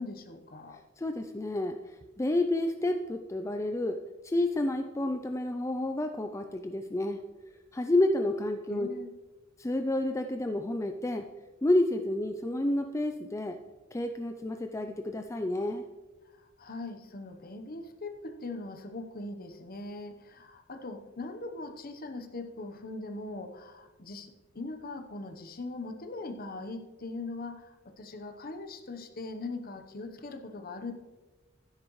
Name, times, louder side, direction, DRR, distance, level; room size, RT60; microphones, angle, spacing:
voice 1, 0.0-0.8 8.7-9.1 16.3-30.9, left 2 dB, 45° left, 7 dB, 0.9 m, -41 dB
voice 2, 1.0-7.2 7.7-8.9 9.6-11.3 11.6-13.6 13.9-15.8, left 1 dB, 15° left, 6 dB, 0.4 m, -30 dB
12.5 x 10.5 x 3.1 m, 1.2 s
head